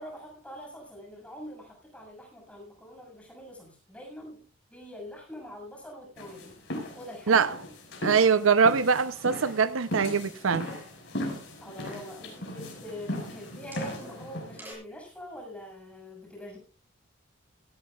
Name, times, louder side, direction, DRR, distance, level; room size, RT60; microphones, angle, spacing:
voice 1, 0.0-4.4 4.7-6.6 6.9-7.4 11.6-16.6, equal, 5° left, 6.7 m, -44 dB
sound 1, 6.2-14.6, left 1 dB, 60° left, 5.6 m, -38 dB
voice 2, 8.0-10.7, right 5 dB, 80° right, 0.7 m, -23 dB
sound 2, 9.0-9.9 10.1-11.0 11.6-12.2 13.1-14.7, equal, 10° right, 6.6 m, -50 dB
17.0 x 17.0 x 2.4 m
head